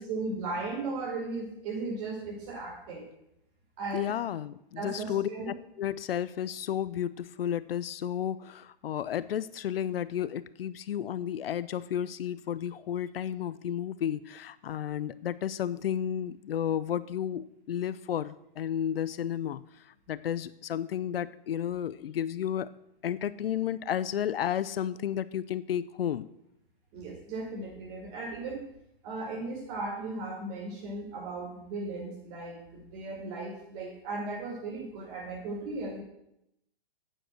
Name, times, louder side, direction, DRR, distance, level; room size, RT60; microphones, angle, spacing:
voice 1, 0.0-3.1 3.8-4.1 4.8-5.5 26.9-28.6 29.0-36.0, right 3 dB, 35° right, -1 dB, 5.0 m, -36 dB
voice 2, 3.9-19.6 20.1-22.7 23.0-26.3, left 10 dB, 75° left, 16 dB, 0.7 m, -32 dB
8.9 x 7.7 x 7.9 m, 0.81 s
hypercardioid pair, 135°, 29 cm